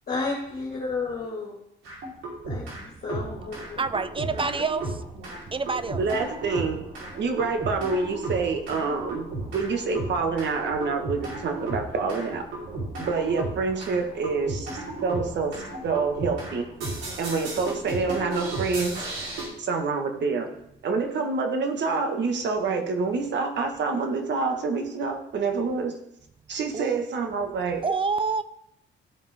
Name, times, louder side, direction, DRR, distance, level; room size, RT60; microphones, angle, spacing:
voice 1, 0.1-1.5 2.4-3.8, left 3 dB, 45° left, 2.0 m, -32 dB
sound 1, 1.8-2.8 3.1-19.5, right 2 dB, 80° right, 3.7 m, -35 dB
voice 2, 3.8-4.9 5.5-6.0 26.7-27.1 27.8-28.4, right 4 dB, 25° right, 0.5 m, -27 dB
voice 3, 6.0-6.8 7.1-9.3 9.5-12.5 13.0-14.7 15.0-16.7 17.2-19.0 19.6-20.5 20.8-26.0 26.5-27.8, right 4 dB, 60° right, 1.6 m, -27 dB
14.5 x 5.3 x 3.5 m
cardioid pair, 90°, 20 cm